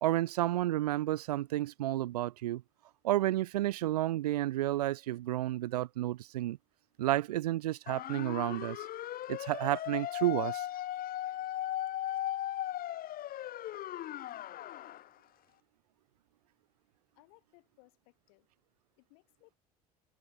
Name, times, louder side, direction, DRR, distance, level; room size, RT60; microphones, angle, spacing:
voice 1, 0.0-2.6 3.0-6.6 7.0-8.8 9.3-10.7, right 15 dB, 80° right, 0.6 m, -31 dB
sound 1, 7.9-15.1, left 13 dB, 50° left, 1.2 m, -37 dB
voice 2, 13.6-14.0 17.1-18.5 19.0-19.6, left 35 dB, 70° left, 6.1 m, -65 dB
hypercardioid pair, 65°, 19 cm